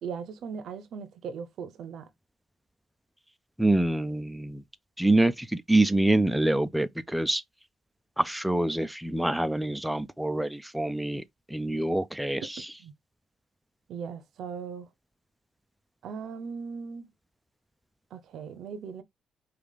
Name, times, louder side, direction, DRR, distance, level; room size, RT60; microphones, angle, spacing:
voice 1, 0.0-2.1 12.8-12.9 13.9-14.9 16.0-17.1 18.1-19.0, right 6 dB, 75° right, 0.7 m, -38 dB
voice 2, 3.6-4.6 5.0-7.4 8.2-11.2 11.5-12.4, right 1 dB, 5° right, 0.4 m, -25 dB
5.0 x 2.4 x 3.3 m
cardioid pair, 90°, 0 cm